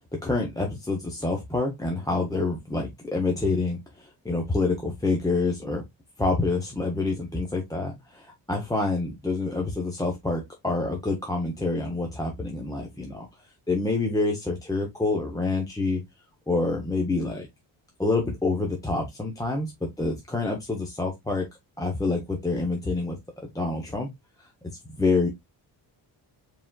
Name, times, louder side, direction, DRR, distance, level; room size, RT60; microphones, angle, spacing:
voice 1, 0.2-5.8 6.2-13.3 13.7-16.0 16.5-17.5 18.0-21.5 21.8-24.1 24.6-25.3, left 3 dB, 10° left, 0.7 m, -27 dB
4.7 x 3.7 x 2.2 m
wide cardioid pair, 160°, 45 cm